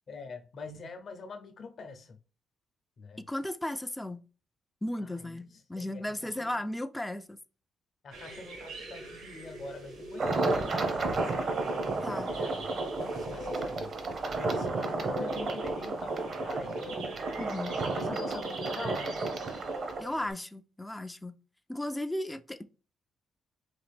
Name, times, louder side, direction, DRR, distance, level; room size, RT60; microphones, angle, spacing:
voice 1, 0.1-2.2 3.0-3.2 5.0-6.6 8.0-11.5 12.0-12.7 13.0-13.9 14.3-17.1 17.7-19.2, left 4 dB, 50° left, 0.7 m, -45 dB
voice 2, 3.2-4.2 4.8-7.4 12.0-12.3 17.4-17.7 20.0-21.4 21.7-22.7, left 1 dB, 10° left, 0.3 m, -35 dB
sound 1, 8.1-20.3, right 2 dB, 85° right, 1.6 m, -43 dB
sound 2, 10.2-20.0, right 3 dB, 50° right, 0.8 m, -32 dB
3.9 x 2.5 x 3.4 m
cardioid pair, 95°, 0 cm